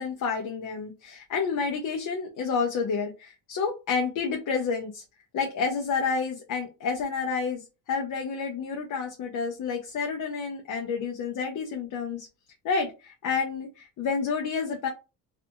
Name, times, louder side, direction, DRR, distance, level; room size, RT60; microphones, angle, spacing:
voice 1, 0.0-5.0 5.3-12.3 12.6-14.9, left 5 dB, 55° left, 2 dB, 0.7 m, -29 dB
2.6 x 2.6 x 2.3 m, 0.29 s
cardioid pair, 85°, 38 cm